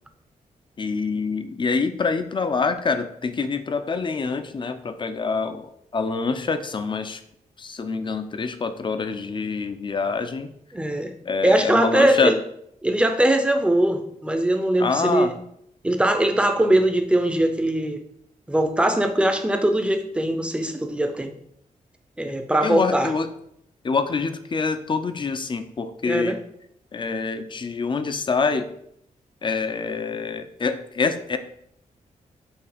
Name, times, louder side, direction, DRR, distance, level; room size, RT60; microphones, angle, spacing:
voice 1, 0.8-5.6 5.9-7.2 7.6-10.5 11.2-12.3 14.8-15.3 22.6-23.3 23.8-26.4 26.9-28.7 29.4-31.4, left 4 dB, 35° left, 9 dB, 0.5 m, -26 dB
voice 2, 10.7-11.1 11.4-12.4 12.8-15.4 15.8-18.0 18.5-21.3 22.2-23.1 26.1-26.4, right 1 dB, 10° right, 6 dB, 0.6 m, -21 dB
7.1 x 2.9 x 5.0 m, 0.73 s
wide cardioid pair, 120°, 14 cm